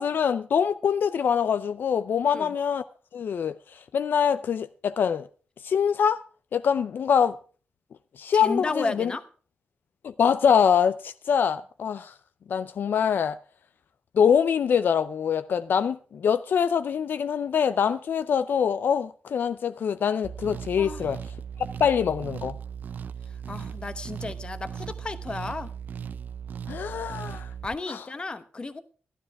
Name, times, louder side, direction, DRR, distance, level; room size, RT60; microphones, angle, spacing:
voice 1, 0.0-2.8 3.1-5.3 5.6-6.2 6.5-7.4 8.2-9.1 10.0-12.1 12.5-13.4 14.1-21.2 21.8-22.6 26.7-27.5 27.9-28.0, left 7 dB, 80° left, 0.5 m, -24 dB
voice 2, 8.3-9.2 20.8-21.1 23.5-25.7 27.6-28.8, left 3 dB, 30° left, 1.0 m, -33 dB
sound 1, 20.2-27.8, right 7 dB, 60° right, 0.5 m, -37 dB
12.5 x 12.5 x 4.7 m
wide cardioid pair, 145°, 3 cm